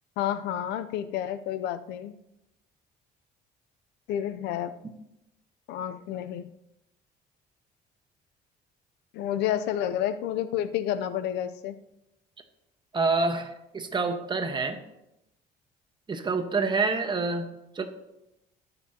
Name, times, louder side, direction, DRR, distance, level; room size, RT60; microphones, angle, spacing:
voice 1, 0.2-2.1 4.1-4.8 5.7-6.5 9.1-11.8, left 11 dB, 85° left, 12 dB, 0.6 m, -30 dB
voice 2, 12.9-14.8 16.1-17.8, right 4 dB, 25° right, 6 dB, 1.2 m, -27 dB
19.5 x 6.9 x 2.9 m, 0.89 s
cardioid pair, 110°, 17 cm